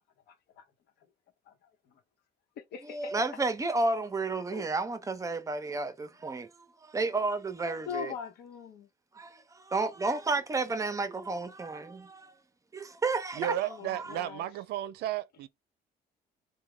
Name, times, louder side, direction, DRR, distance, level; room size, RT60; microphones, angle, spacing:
voice 1, 0.3-0.6 1.5-1.6 2.6-3.1 4.5-4.7 7.9-8.9 13.6-14.5, left 7 dB, 70° left, 0.9 m, -41 dB
voice 2, 2.9-6.5 6.8-8.1 9.1-12.3 12.7-13.5 14.0-14.1, right 3 dB, 20° right, 0.6 m, -31 dB
voice 3, 13.3-15.5, right 12 dB, 75° right, 0.4 m, -33 dB
3.5 x 2.2 x 3.7 m
cardioid pair, 110°, 17 cm